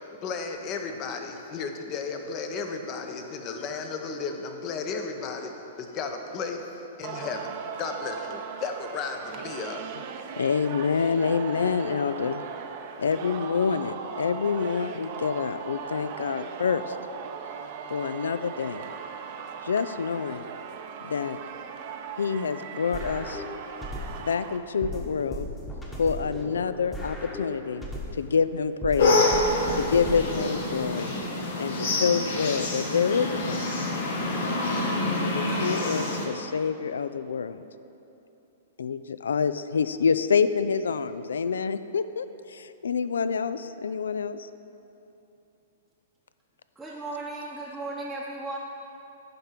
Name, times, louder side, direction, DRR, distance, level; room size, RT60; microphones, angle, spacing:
voice 1, 0.2-5.5 5.8-9.8, left 5 dB, 35° left, 5 dB, 0.8 m, -34 dB
Singing, 7.0-24.6, right 7 dB, 50° right, 0.6 m, -38 dB
voice 2, 10.4-12.4 13.0-17.0 17.9-18.8 19.6-20.5 21.0-21.4 22.2-23.4 24.3-25.5 26.0-29.3 29.8-31.1 31.6-33.8 35.3-37.6 38.8-44.5, left 6 dB, 85° left, 13 dB, 0.3 m, -27 dB
sound 1, 22.9-24.3 24.8-28.3 28.8-30.9, left 1 dB, 15° left, 1.2 m, -37 dB
sound 2, 29.0-36.3, left 2 dB, 70° left, 1.3 m, -27 dB
voice 3, 46.8-48.6, right 2 dB, 5° right, -7 dB, 0.8 m, -35 dB
10.5 x 3.6 x 5.8 m, 2.9 s
hypercardioid pair, 125°, 0 cm